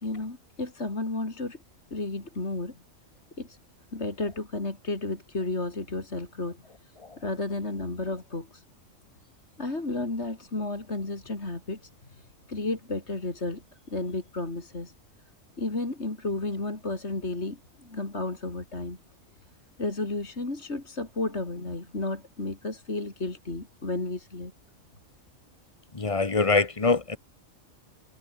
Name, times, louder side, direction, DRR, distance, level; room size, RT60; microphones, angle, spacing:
voice 1, 0.0-1.6 1.9-2.8 3.4-3.6 3.9-8.6 9.6-14.9 15.6-19.0 19.8-24.5, left 2 dB, 60° left, 4.1 m, -33 dB
voice 2, 25.9-27.2, left 4 dB, 25° left, 1.3 m, -24 dB
omnidirectional pair, 1.3 m